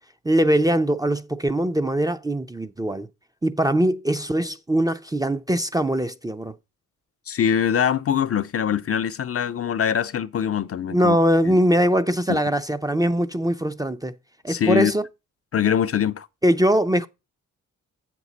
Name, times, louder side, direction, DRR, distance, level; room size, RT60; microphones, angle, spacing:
voice 1, 0.2-3.1 3.4-6.5 10.9-14.1 14.4-15.0 16.4-17.1, right 1 dB, 10° right, 0.4 m, -21 dB
voice 2, 7.3-11.2 11.5-11.6 12.3-12.4 14.5-14.9 15.5-16.3, left 8 dB, 45° left, 0.5 m, -23 dB
7.8 x 6.1 x 4.0 m
cardioid pair, 75°, 33 cm